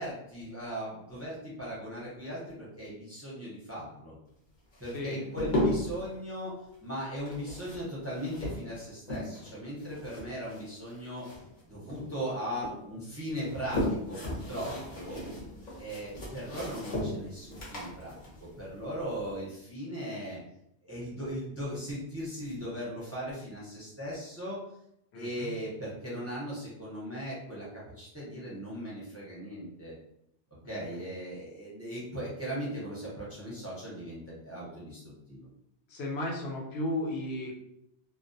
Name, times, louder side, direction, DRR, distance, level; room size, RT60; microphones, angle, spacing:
voice 1, 0.0-4.1 4.8-6.5 6.8-11.3 11.6-15.2 15.8-20.4 20.8-24.6 25.1-29.9 30.7-35.5, equal, 15° right, -7 dB, 0.5 m, -38 dB
sound 1, 4.7-6.0 7.2-9.5 9.8-11.6 11.9-12.8 13.3-19.4, left 1 dB, 50° left, 0.9 m, -35 dB
voice 2, 4.9-5.3 25.1-25.6 30.6-31.0 35.9-37.5, left 1 dB, 75° left, -2 dB, 0.9 m, -35 dB
2.3 x 2.2 x 2.5 m, 0.79 s
omnidirectional pair, 1.1 m